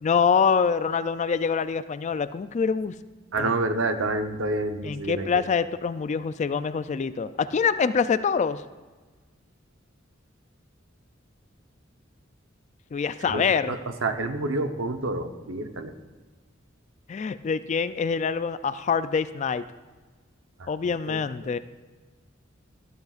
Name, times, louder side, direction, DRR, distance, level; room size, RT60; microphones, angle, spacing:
voice 1, 0.0-2.9 3.4-3.5 4.8-8.6 12.9-13.8 17.1-19.6 20.7-21.6, left 6 dB, 35° left, 13 dB, 0.3 m, -25 dB
voice 2, 3.3-5.4 13.2-15.9 20.6-21.5, right 2 dB, 85° right, 7 dB, 0.9 m, -29 dB
13.0 x 13.0 x 2.4 m, 1.4 s
head